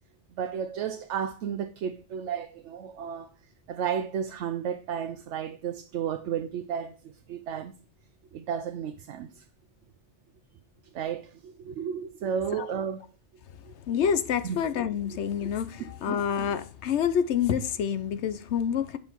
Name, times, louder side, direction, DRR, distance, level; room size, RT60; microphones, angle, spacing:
voice 1, 0.4-3.3 3.7-6.9 7.3-7.7 8.3-9.4 10.9-13.0 13.7-13.8 14.4-14.6 15.1-15.2 16.1-16.2, right 8 dB, 85° right, 0.9 m, -33 dB
voice 2, 13.9-19.0, left 8 dB, 75° left, 1.0 m, -27 dB
8.0 x 5.3 x 4.5 m
omnidirectional pair, 1.2 m